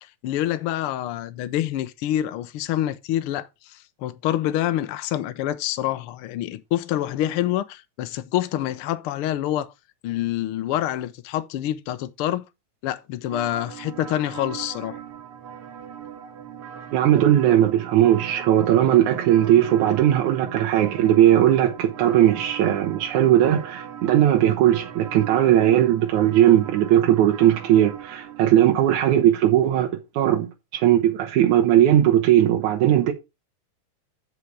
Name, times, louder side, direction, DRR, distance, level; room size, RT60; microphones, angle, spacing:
voice 1, 0.0-9.7 10.0-12.5 12.8-15.0, left 13 dB, 75° left, 1.3 m, -27 dB
sound 1, 13.3-29.2, right 8 dB, 60° right, 2.0 m, -39 dB
voice 2, 16.9-33.1, right 12 dB, 85° right, 2.5 m, -18 dB
8.4 x 5.7 x 4.7 m
omnidirectional pair, 3.3 m